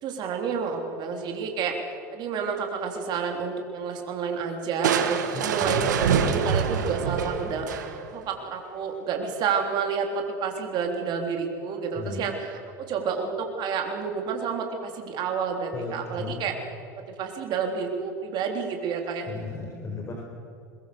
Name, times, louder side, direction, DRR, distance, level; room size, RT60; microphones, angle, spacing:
voice 1, 0.0-1.7 2.1-16.5 17.1-19.3, right 6 dB, 50° right, 3 dB, 3.5 m, -30 dB
Crushing, 4.8-8.2, right 7 dB, 90° right, 1.8 m, -25 dB
voice 2, 5.3-5.9 12.0-12.2 15.7-16.5 19.3-20.1, left 3 dB, 30° left, 0 dB, 4.8 m, -35 dB
22.0 x 21.5 x 7.0 m, 2.5 s
hypercardioid pair, 95°, 9 cm